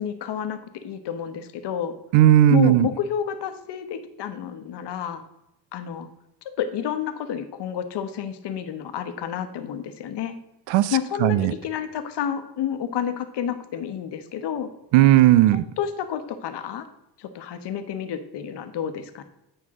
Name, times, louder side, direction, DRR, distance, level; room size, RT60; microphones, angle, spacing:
voice 1, 0.0-1.9 2.5-5.2 5.7-6.1 6.6-10.3 10.9-14.7 15.8-16.9 17.2-19.2, left 9 dB, 70° left, 9 dB, 1.1 m, -30 dB
voice 2, 2.1-2.9 10.7-11.5 14.9-15.6, right 13 dB, 85° right, 17 dB, 0.5 m, -16 dB
9.5 x 5.5 x 3.6 m, 0.85 s
cardioid pair, 85°, 43 cm